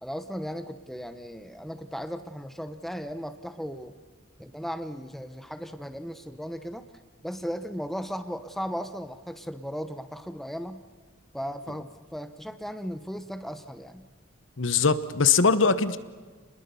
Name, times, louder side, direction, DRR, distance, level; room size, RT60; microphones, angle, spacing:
voice 1, 0.0-3.9 4.4-6.8 7.2-10.8 11.3-14.1, equal, ahead, 9 dB, 0.8 m, -36 dB
voice 2, 14.6-16.0, left 5 dB, 60° left, 13 dB, 1.0 m, -21 dB
29.0 x 21.0 x 6.9 m, 1.4 s
head